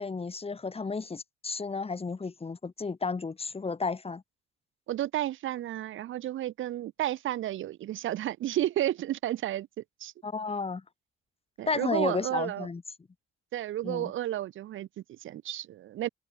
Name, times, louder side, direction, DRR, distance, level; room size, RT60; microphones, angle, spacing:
voice 1, 0.0-4.2 10.2-10.8 11.7-12.8 13.8-14.1, left 4 dB, 30° left, 5.8 m, -32 dB
voice 2, 4.9-10.1 11.6-12.7 13.5-16.1, right 13 dB, 80° right, 3.0 m, -32 dB
open air
cardioid pair, 90°, 20 cm